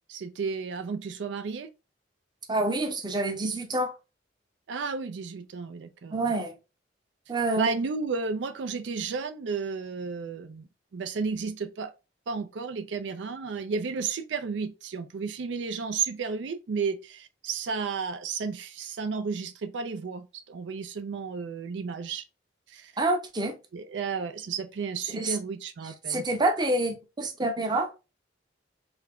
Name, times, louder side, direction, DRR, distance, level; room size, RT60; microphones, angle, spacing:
voice 1, 0.1-1.7 4.7-6.3 7.6-10.7 10.9-11.9 12.3-22.2 22.7-22.9 23.7-26.2, right 5 dB, 75° right, 0.4 m, -32 dB
voice 2, 2.5-3.9 6.1-6.5 7.3-7.7 23.0-23.5 25.1-25.4 26.1-27.9, right 2 dB, 25° right, 0.6 m, -27 dB
3.5 x 2.2 x 3.4 m
head